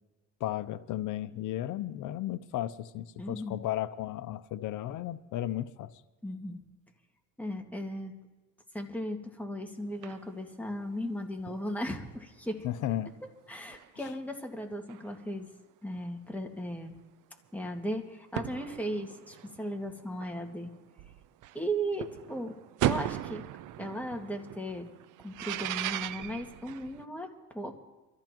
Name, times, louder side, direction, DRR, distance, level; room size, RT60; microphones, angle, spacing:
voice 1, 0.4-5.9 12.6-13.1 13.9-14.1, left 13 dB, 80° left, 13 dB, 0.6 m, -34 dB
voice 2, 3.2-3.6 6.2-6.6 7.4-8.1 8.7-12.7 13.5-15.5 15.8-17.0 17.5-20.7 21.5-22.6 22.8-23.4 23.8-24.9 25.2-27.7, equal, 5° left, 2 dB, 2.0 m, -36 dB
sound 1, 10.0-10.3 10.8-10.9 11.4-11.8 12.4-12.5 12.7-12.8 13.7-13.9 14.7-15.2 16.0-16.1 17.0-17.1 17.8-17.9 18.3-21.6 22.0-27.0, right 13 dB, 90° right, 0.6 m, -37 dB
24.0 x 14.0 x 3.0 m, 1.2 s
cardioid pair, 90°, 30 cm